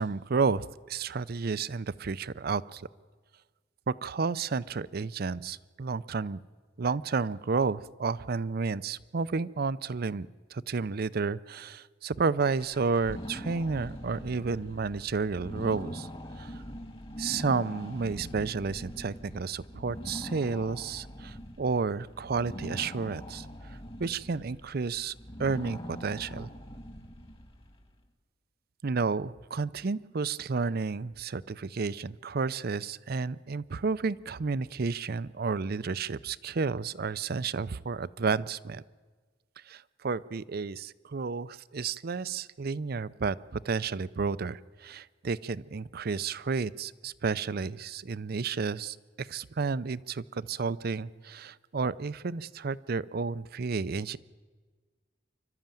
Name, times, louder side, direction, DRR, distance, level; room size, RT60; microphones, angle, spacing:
voice 1, 0.0-2.9 3.9-6.4 6.8-16.1 16.4-16.5 17.2-25.1 25.4-26.5 28.8-38.8 39.7-54.2, right 4 dB, 55° right, 18 dB, 0.5 m, -31 dB
sound 1, 12.4-27.8, equal, 30° left, 2.1 m, -43 dB
27.0 x 12.5 x 9.1 m, 1.4 s
head